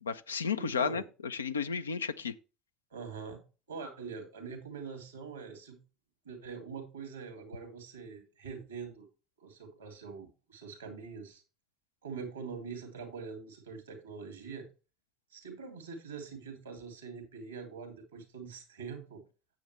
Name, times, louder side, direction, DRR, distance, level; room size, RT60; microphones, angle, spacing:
voice 1, 0.0-2.3, left 6 dB, 85° left, 0.5 m, -33 dB
voice 2, 0.5-1.1 2.9-3.4 3.7-5.8 6.2-9.1 9.4-11.4 12.0-14.7 15.3-19.2, right 5 dB, 85° right, 2.6 m, -44 dB
8.6 x 7.9 x 3.2 m
figure-of-eight pair, 65°, 0 cm